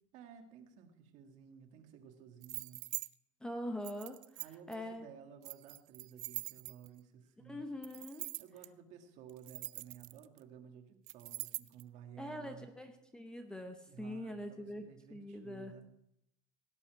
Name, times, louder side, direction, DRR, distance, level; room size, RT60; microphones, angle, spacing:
voice 1, 0.1-2.9 4.4-7.7 8.4-12.7 13.9-15.9, right 8 dB, 55° right, 5 dB, 1.8 m, -55 dB
sound 1, 2.4-3.1 3.8-4.7 5.4-7.0 7.8-8.7 9.3-10.4 11.1-11.8, right 23 dB, 70° right, 0.5 m, -43 dB
voice 2, 3.4-4.2 4.7-5.1 7.4-8.3 12.2-15.8, left 1 dB, 5° left, 6 dB, 0.8 m, -43 dB
17.0 x 8.5 x 4.6 m, 0.76 s
cardioid pair, 150°, 15 cm